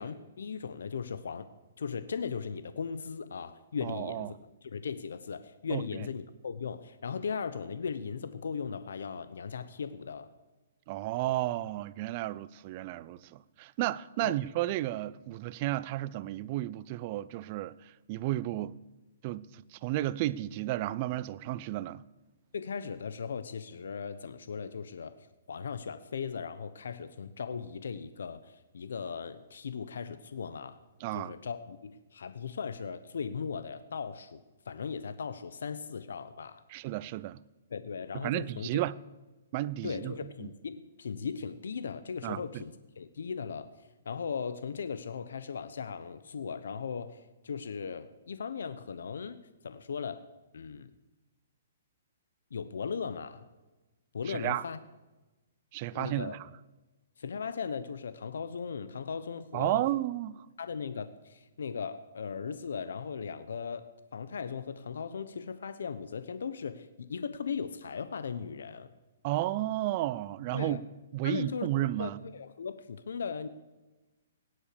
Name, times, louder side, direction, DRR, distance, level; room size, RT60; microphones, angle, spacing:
voice 1, 0.0-1.4 1.8-10.3 14.2-14.3 22.5-25.1 25.5-30.8 31.1-34.4 34.7-36.6 37.7-38.8 39.8-43.7 44.0-50.3 50.5-50.9 52.5-53.4 54.1-54.8 55.9-56.4 57.2-59.8 60.6-68.9 70.5-70.8 71.2-71.7 72.0-73.5, left 6 dB, 80° left, 0.9 m, -38 dB
voice 2, 3.8-4.3 5.7-5.8 10.9-17.7 18.1-18.7 19.2-22.0 31.0-31.3 36.7-37.4 38.1-38.9 39.5-40.1 40.4-40.5 42.2-42.6 54.3-54.6 55.7-56.5 59.5-60.5 69.2-70.8 71.1-72.2, right 15 dB, 35° right, 0.5 m, -32 dB
17.5 x 9.9 x 6.9 m
hypercardioid pair, 160°, 0 cm